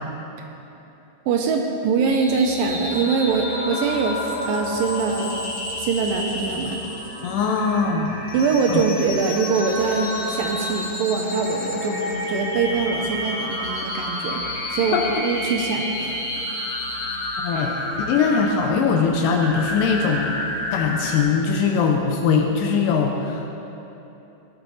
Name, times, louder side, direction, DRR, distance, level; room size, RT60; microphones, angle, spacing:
voice 1, 1.3-5.4 5.8-6.8 8.3-14.4 14.7-16.1, right 5 dB, 75° right, 2 dB, 2.2 m, -23 dB
sound 1, 2.0-21.2, left 1 dB, 35° left, 2.1 m, -30 dB
voice 2, 7.2-8.3 8.7-8.8 14.9-15.2 17.4-20.4 20.7-23.5, left 5 dB, 80° left, 2 dB, 2.1 m, -21 dB
17.0 x 7.4 x 4.1 m, 3.0 s
omnidirectional pair, 4.4 m